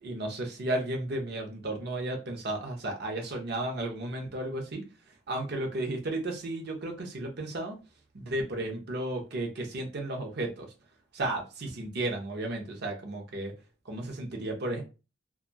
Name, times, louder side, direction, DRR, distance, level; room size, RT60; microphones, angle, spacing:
voice 1, 0.0-4.8 5.3-7.8 8.1-10.7 11.1-13.5 13.9-14.8, right 1 dB, 55° right, 0.7 m, -33 dB
2.8 x 2.3 x 2.2 m
head